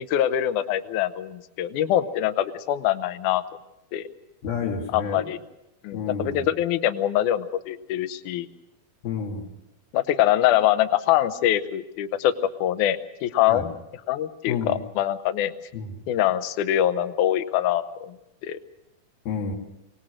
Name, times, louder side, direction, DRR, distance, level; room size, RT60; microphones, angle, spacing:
voice 1, 0.0-3.4 3.9-4.0 4.9-5.4 5.8-8.5 9.9-13.7 14.1-15.5 16.1-18.2 18.4-18.6, left 12 dB, 70° left, 11 dB, 2.2 m, -24 dB
voice 2, 4.4-5.3 5.9-6.5 9.0-9.5 13.5-13.7 14.5-14.8 15.7-15.9 19.3-19.5, left 5 dB, 85° left, -2 dB, 4.0 m, -30 dB
24.0 x 19.0 x 6.4 m, 0.88 s
omnidirectional pair, 4.1 m